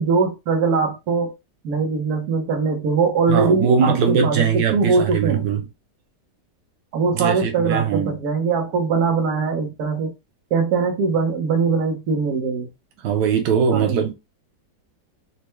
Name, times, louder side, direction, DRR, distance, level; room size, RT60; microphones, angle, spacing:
voice 1, 0.0-1.3 1.6-5.5 6.9-10.1 10.5-12.7 13.7-14.1, right 5 dB, 65° right, 1.4 m, -21 dB
voice 2, 3.3-5.6 7.1-8.1 13.0-14.1, right 6 dB, 90° right, 1.3 m, -20 dB
4.3 x 2.2 x 3.1 m
omnidirectional pair, 1.8 m